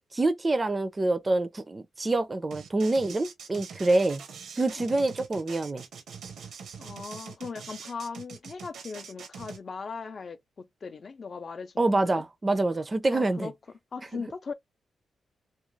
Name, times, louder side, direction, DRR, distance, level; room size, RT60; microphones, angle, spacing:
voice 1, 0.1-4.2 4.6-5.8 11.8-13.5, right 2 dB, 25° right, 0.4 m, -26 dB
sound 1, 2.5-9.6, right 6 dB, 80° right, 0.6 m, -44 dB
voice 2, 6.8-12.2 13.1-13.5 13.9-14.5, left 5 dB, 45° left, 0.5 m, -39 dB
2.4 x 2.2 x 3.1 m
cardioid pair, 85°, 0 cm